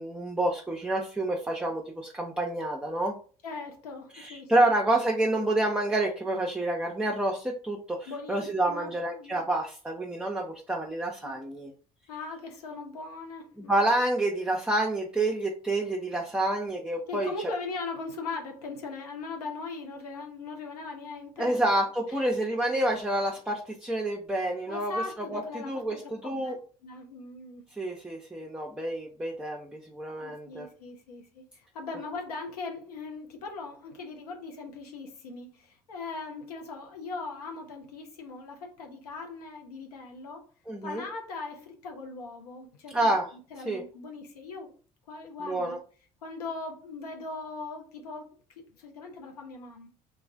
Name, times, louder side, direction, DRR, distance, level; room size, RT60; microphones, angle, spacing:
voice 1, 0.0-3.2 4.1-11.7 13.6-17.3 21.4-24.9 25.3-26.6 27.8-30.7 40.7-41.0 42.9-43.3 43.7-43.8 45.4-45.8, right 1 dB, 5° right, 0.6 m, -28 dB
voice 2, 3.4-4.7 8.1-9.4 11.2-11.3 12.1-13.8 17.1-21.7 24.7-26.5 26.8-27.6 30.2-40.5 40.8-43.1 43.5-44.7 45.1-45.8 46.2-48.3 48.8-49.9, left 3 dB, 85° left, 0.7 m, -39 dB
2.3 x 2.2 x 3.4 m
hypercardioid pair, 55°, 19 cm